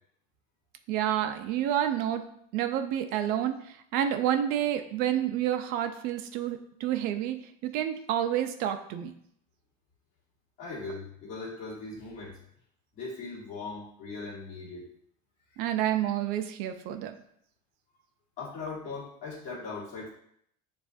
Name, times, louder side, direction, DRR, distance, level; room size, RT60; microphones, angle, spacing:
voice 1, 0.9-2.2 2.5-9.1 15.6-17.1, right 11 dB, 60° right, 8 dB, 0.4 m, -29 dB
voice 2, 10.6-12.4 12.9-14.9 18.4-20.1, left 3 dB, 45° left, -5 dB, 1.7 m, -39 dB
7.0 x 2.4 x 2.5 m, 0.69 s
cardioid pair, 135°, 18 cm